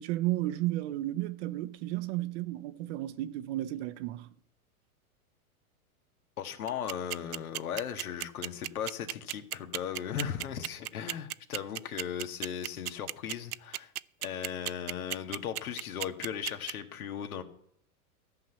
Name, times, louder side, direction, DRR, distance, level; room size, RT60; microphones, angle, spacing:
voice 1, 0.0-4.3, right 16 dB, 50° right, 1.0 m, -33 dB
voice 2, 6.4-13.9 14.2-17.4, left 9 dB, 70° left, 2.0 m, -37 dB
sound 1, 6.7-16.7, right 14 dB, 80° right, 0.6 m, -34 dB
14.5 x 6.2 x 8.3 m
hypercardioid pair, 105°, 44 cm